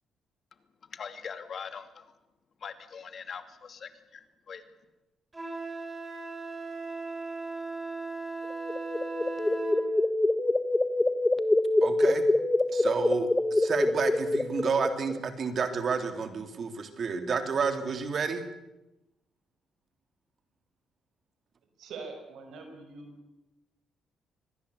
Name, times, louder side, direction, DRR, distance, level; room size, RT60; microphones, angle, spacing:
voice 1, 0.9-2.1 2.6-4.6, left 6 dB, 50° left, 10 dB, 2.6 m, -42 dB
Wind instrument woodwind instrument, 5.3-9.8, right 3 dB, 20° right, 7.5 m, -37 dB
sound 1, 8.5-15.2, left 2 dB, 15° left, 1.4 m, -26 dB
voice 2, 11.8-12.2 12.7-18.4, right 5 dB, 50° right, 8 dB, 3.1 m, -30 dB
voice 3, 21.8-23.2, right 4 dB, 75° right, 5 dB, 5.7 m, -43 dB
25.0 x 20.0 x 8.4 m, 0.97 s
cardioid pair, 90°, 0 cm